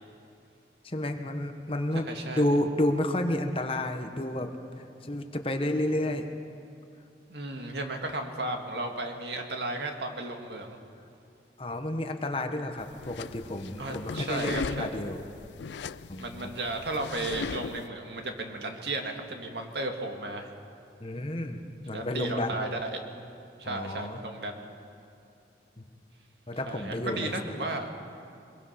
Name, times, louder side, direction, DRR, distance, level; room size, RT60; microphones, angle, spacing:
voice 1, 0.8-4.5 4.8-6.3 11.6-15.2 16.1-16.5 21.0-22.6 23.6-24.2 25.8-25.9 26.5-27.3, left 1 dB, 30° left, 6 dB, 1.2 m, -31 dB
voice 2, 2.0-2.5 7.3-10.8 13.8-15.0 16.2-20.5 21.9-23.0 23.6-24.7 26.7-27.9, right 2 dB, 75° right, 3 dB, 2.0 m, -34 dB
sound 1, 12.8-17.9, left 5 dB, 80° left, 0.4 m, -38 dB
23.0 x 22.0 x 5.8 m, 2.6 s
head